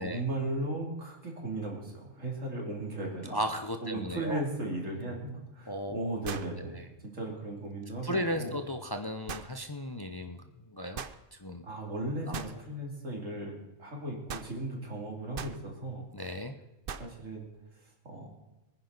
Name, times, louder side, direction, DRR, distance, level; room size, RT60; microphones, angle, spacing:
voice 1, 0.0-3.4 3.8-8.6 11.6-16.1 17.0-17.5 17.8-18.3, right 2 dB, 85° right, 0 dB, 3.4 m, -36 dB
voice 2, 3.3-4.4 5.7-6.2 6.7-6.8 8.0-11.0 11.3-11.7 12.3-12.4 16.1-16.5, equal, 20° left, 6 dB, 0.7 m, -35 dB
sound 1, 5.0-5.1 6.2-6.6 9.3-9.5 11.0-11.2 12.3-12.6 14.3-14.5 15.3-15.6 16.9-17.1, right 6 dB, 50° right, 0.9 m, -39 dB
23.5 x 10.0 x 4.0 m, 1.0 s
omnidirectional pair, 1.3 m